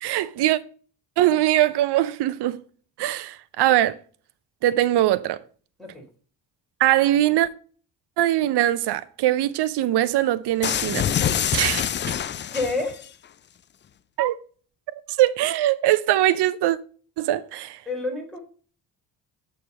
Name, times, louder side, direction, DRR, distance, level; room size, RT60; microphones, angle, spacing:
voice 1, 0.0-0.6 1.2-2.6 3.0-3.9 4.6-5.4 6.8-7.5 8.2-11.0 11.5-11.9 14.2-14.3 15.2-16.8 17.2-17.8, right 14 dB, 55° right, 0.7 m, -21 dB
sound 1, 10.6-13.1, left 9 dB, 25° left, 0.3 m, -25 dB
voice 2, 12.5-13.0 17.9-18.4, left 3 dB, ahead, 3.8 m, -28 dB
6.6 x 5.1 x 5.4 m
hypercardioid pair, 45°, 50 cm